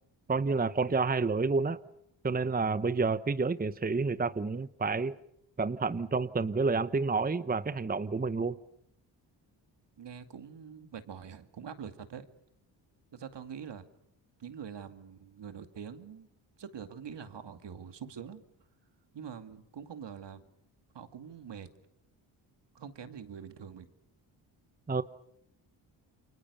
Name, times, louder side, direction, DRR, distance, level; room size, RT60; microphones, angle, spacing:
voice 1, 0.3-1.8 2.2-5.1 5.6-8.6 24.9-25.0, right 4 dB, 20° right, 14 dB, 0.9 m, -29 dB
voice 2, 10.0-12.3 13.1-13.8 14.4-16.3 16.6-18.4 19.1-20.4 20.9-21.7 22.7-23.9, right 7 dB, 60° right, 9 dB, 2.4 m, -44 dB
29.0 x 24.0 x 6.8 m, 0.77 s
supercardioid pair, 55°, 48 cm